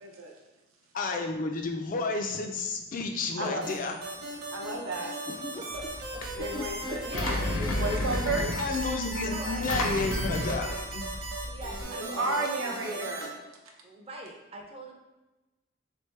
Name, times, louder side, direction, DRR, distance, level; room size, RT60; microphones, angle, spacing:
voice 1, 0.0-0.3 3.4-3.7 4.5-5.1 6.3-8.5 11.9-13.3, right 2 dB, 80° right, 1 dB, 0.7 m, -33 dB
voice 2, 0.9-4.0 5.3-5.6 6.5-6.6 8.6-11.0, left 3 dB, 40° left, 4 dB, 0.3 m, -31 dB
sound 1, 3.6-13.3, right 2 dB, 50° right, 0.9 m, -38 dB
voice 3, 5.0-6.6 7.0-7.4 9.2-9.6 11.5-12.8 13.8-14.9, right 1 dB, 30° right, 1 dB, 0.5 m, -43 dB
Engine, 5.7-11.8, left 1 dB, 85° left, 0.6 m, -33 dB
3.5 x 3.3 x 3.2 m, 1.1 s
head